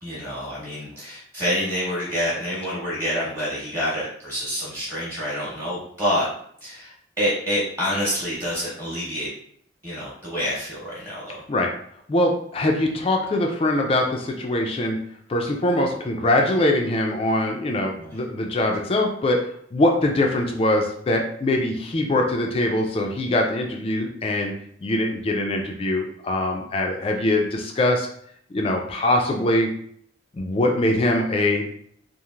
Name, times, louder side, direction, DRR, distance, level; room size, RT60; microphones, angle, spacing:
voice 1, 0.0-6.3 6.6-9.3 9.8-11.4 18.0-18.2, equal, 15° right, -8 dB, 1.0 m, -27 dB
voice 2, 12.1-15.0 15.3-19.4 19.7-24.5 24.8-28.1 28.5-29.7 30.3-31.6, left 1 dB, 30° left, 2 dB, 0.3 m, -22 dB
3.0 x 2.4 x 2.4 m, 0.64 s
head